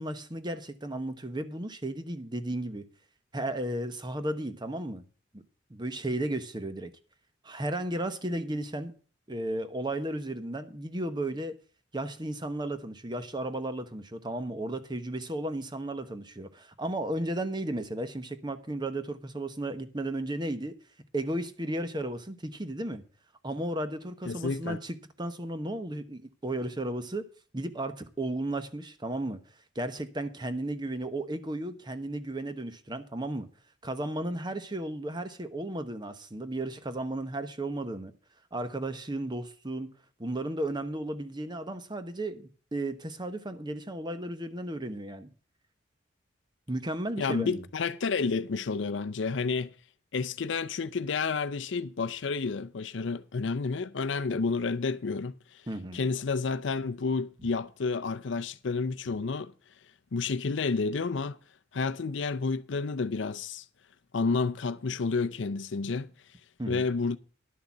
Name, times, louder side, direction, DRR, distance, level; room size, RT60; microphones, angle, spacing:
voice 1, 0.0-2.9 3.3-5.0 5.7-6.9 7.4-8.9 9.3-11.6 11.9-20.8 21.1-23.0 23.4-27.3 27.5-29.4 29.7-33.5 33.8-38.1 38.5-39.9 40.2-45.3 46.7-47.6 55.7-56.0 66.6-66.9, right 1 dB, 25° right, 1.0 m, -34 dB
voice 2, 24.3-24.8 47.2-49.7 50.1-55.6 55.9-59.5 60.1-61.4 61.7-63.6 64.1-66.1 66.7-67.2, left 4 dB, 70° left, 0.5 m, -30 dB
11.5 x 6.6 x 7.1 m
head